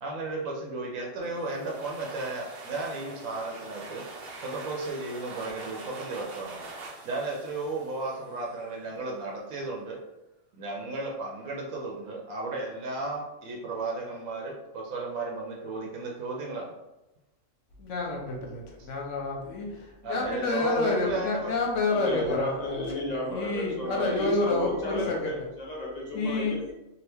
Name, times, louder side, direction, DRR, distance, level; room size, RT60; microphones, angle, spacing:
voice 1, 0.0-4.0 4.4-6.6 7.0-10.0 10.5-16.7 18.8-18.9 20.0-21.5, right 3 dB, 85° right, 0 dB, 1.0 m, -34 dB
sound 1, 1.2-8.7, right 2 dB, 60° right, 0.7 m, -44 dB
voice 2, 17.8-25.3 26.1-26.6, left 3 dB, 70° left, 0 dB, 1.1 m, -29 dB
voice 3, 21.9-26.7, left 1 dB, 45° left, -4 dB, 0.5 m, -33 dB
2.8 x 2.4 x 3.3 m, 0.98 s
omnidirectional pair, 1.4 m